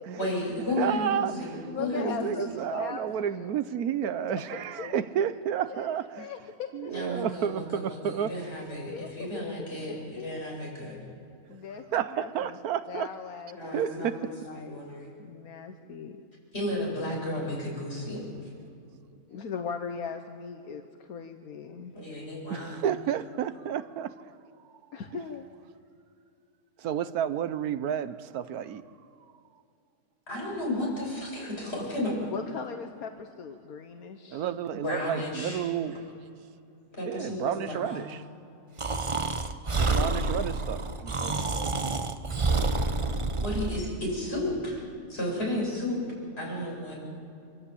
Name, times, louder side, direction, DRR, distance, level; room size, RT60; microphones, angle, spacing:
voice 1, 0.2-2.3 6.9-11.0 13.6-15.1 16.5-18.2 21.9-22.8 30.3-32.3 34.7-35.6 35.9-36.0 37.0-38.0 43.4-44.8 45.1-46.0 46.4-47.0, left 1 dB, 45° left, 7.8 m, -33 dB
voice 2, 0.8-6.3 6.7-8.3 11.9-13.1 13.7-14.3 22.5-24.4 26.8-29.0 34.3-36.1 37.0-38.2 39.8-41.7, right 9 dB, 85° right, 1.3 m, -31 dB
voice 3, 1.6-3.5 4.3-4.4 4.8-4.9 5.7-5.9 6.2-6.9 8.9-10.5 11.5-12.6 12.9-14.8 15.2-16.2 19.3-21.9 24.9-25.5 32.3-34.4, left 6 dB, 75° left, 1.5 m, -39 dB
Breathing, 38.8-43.9, right 3 dB, 25° right, 0.8 m, -28 dB
24.5 x 16.0 x 8.5 m
omnidirectional pair, 1.5 m